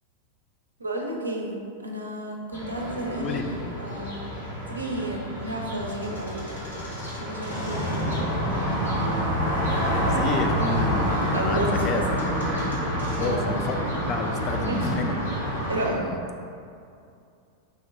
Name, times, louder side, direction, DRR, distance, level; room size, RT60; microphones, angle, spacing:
voice 1, 0.8-1.6 1.8-3.4 3.8-4.2 4.7-6.7 7.2-8.1 11.3-12.3 13.2-13.5 14.7-14.9 15.7-16.0, right 1 dB, 80° right, 0 dB, 0.5 m, -31 dB
sound 1, 2.5-15.9, equal, 80° left, 1.1 m, -28 dB
voice 2, 3.2-3.5 9.9-12.3 13.1-15.2 15.9-16.2, left 3 dB, 30° left, 3 dB, 0.4 m, -30 dB
4.5 x 2.2 x 3.6 m, 2.4 s
figure-of-eight pair, 90°, 0 cm